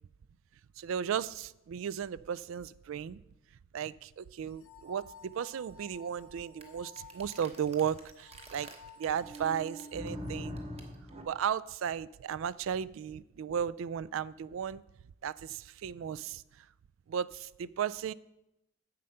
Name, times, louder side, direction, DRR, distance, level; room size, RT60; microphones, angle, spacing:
voice 1, 0.8-3.2 3.7-8.7 9.0-10.6 11.2-14.8 15.2-16.7 17.1-18.1, right 8 dB, 70° right, 20 dB, 0.3 m, -35 dB
sound 1, 4.5-10.3, left 4 dB, 80° left, 0.9 m, -55 dB
sound 2, 6.6-6.7 7.0-11.2, equal, 30° right, 1.0 m, -42 dB
7.6 x 7.6 x 5.6 m, 0.89 s
head